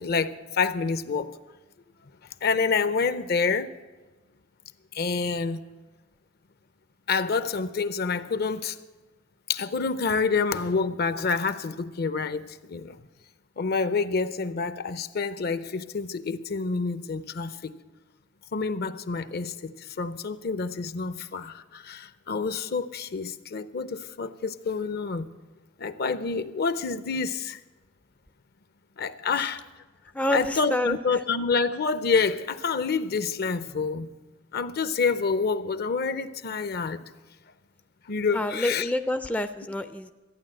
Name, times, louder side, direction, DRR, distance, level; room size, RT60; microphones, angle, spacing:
voice 1, 0.0-1.3 2.4-3.7 4.9-5.6 7.1-8.8 9.5-13.0 13.6-17.8 18.5-25.3 25.8-27.6 29.0-29.6 30.3-34.1 34.5-37.0 38.1-38.9, left 4 dB, 55° left, 13 dB, 0.6 m, -28 dB
voice 2, 30.1-31.0 38.3-40.1, left 1 dB, 5° left, 9 dB, 0.4 m, -27 dB
14.0 x 9.3 x 7.6 m, 1.2 s
head